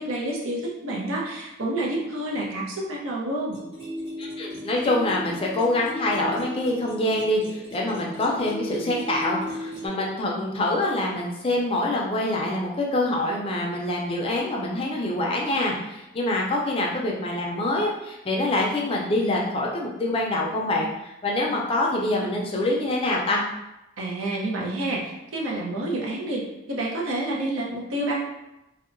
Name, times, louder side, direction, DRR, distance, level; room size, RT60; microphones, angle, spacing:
voice 1, 0.0-3.6 24.0-26.4 26.7-28.2, right 1 dB, 85° right, -3 dB, 0.6 m, -28 dB
sound 1, 3.5-9.9, equal, 25° right, 1.1 m, -36 dB
voice 2, 4.2-23.4, left 1 dB, 25° left, -2 dB, 0.4 m, -25 dB
2.7 x 2.1 x 2.5 m, 0.92 s
head